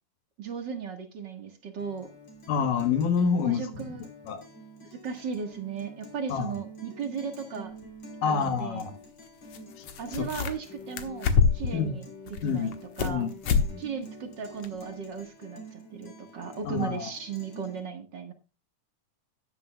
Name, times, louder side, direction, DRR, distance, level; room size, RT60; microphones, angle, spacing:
voice 1, 0.4-2.1 3.4-4.0 4.9-7.8 8.2-8.8 10.0-12.0 12.4-13.3 13.8-18.3, right 6 dB, 45° right, 6 dB, 1.7 m, -36 dB
Guitar, 1.8-17.8, equal, 40° left, 3.9 m, -48 dB
voice 2, 2.5-4.0 4.2-4.4 6.3-6.5 8.2-9.0 9.8-9.9 10.1-10.3 11.7-12.0 12.4-12.7 13.0-13.3 13.7-13.8 16.6-17.1, left 6 dB, 90° left, 7 dB, 2.9 m, -27 dB
sound 1, 7.8-7.9 9.5-9.6 9.8-10.7 11.0-11.8 12.3-13.2 13.4-13.7 14.0-14.1 14.6-14.7, left 6 dB, 60° left, 2.1 m, -25 dB
13.5 x 11.0 x 2.3 m, 0.30 s
omnidirectional pair, 3.6 m